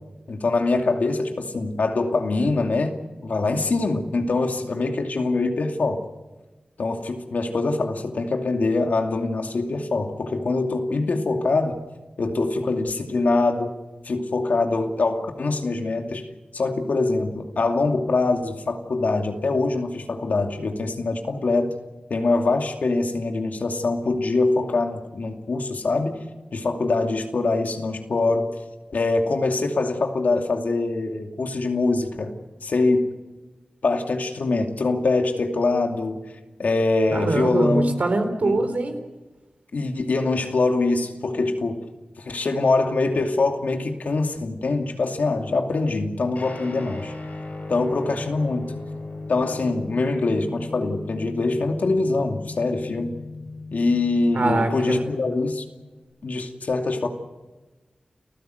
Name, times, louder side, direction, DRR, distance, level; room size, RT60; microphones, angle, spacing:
voice 1, 0.3-6.1 6.8-11.8 12.2-13.7 14.0-16.3 16.5-21.7 22.1-26.3 26.5-28.5 28.9-32.3 32.6-33.1 33.8-36.2 36.6-37.9 38.4-38.6 39.7-41.8 42.2-47.1 47.7-48.7 49.3-53.1 53.7-55.6 56.2-57.1, left 3 dB, 85° left, 4 dB, 2.6 m, -23 dB
voice 2, 37.1-39.0 54.3-55.1, right 2 dB, 70° right, 6 dB, 3.9 m, -23 dB
Guitar, 46.4-56.0, left 2 dB, 70° left, 7.3 m, -37 dB
30.0 x 15.5 x 8.0 m, 1.2 s
wide cardioid pair, 75°, 3 cm